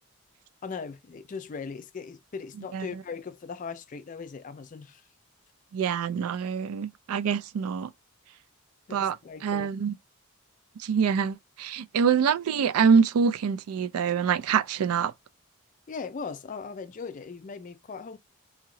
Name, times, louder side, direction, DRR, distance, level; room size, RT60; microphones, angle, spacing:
voice 1, 0.6-5.0 8.9-9.7 15.9-18.2, left 5 dB, 35° left, 0.3 m, -39 dB
voice 2, 5.7-7.9 8.9-9.2 9.4-10.0 10.8-15.1, right 6 dB, 90° right, 0.4 m, -25 dB
2.9 x 2.8 x 2.6 m
head